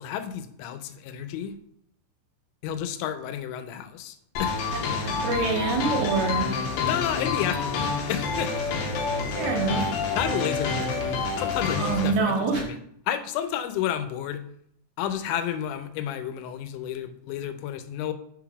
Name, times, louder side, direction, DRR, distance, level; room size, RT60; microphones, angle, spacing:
voice 1, 0.0-1.6 2.6-4.6 6.9-8.6 10.1-11.0 11.4-12.8 13.1-14.4 15.0-18.1, left 10 dB, 90° left, 10 dB, 2.9 m, -31 dB
sound 1, 4.4-12.1, left 4 dB, 75° left, 2.7 m, -28 dB
voice 2, 4.7-6.5 9.3-9.8 11.8-12.7, right 4 dB, 75° right, 1 dB, 2.5 m, -26 dB
6.2 x 3.9 x 4.7 m, 0.70 s
omnidirectional pair, 5.1 m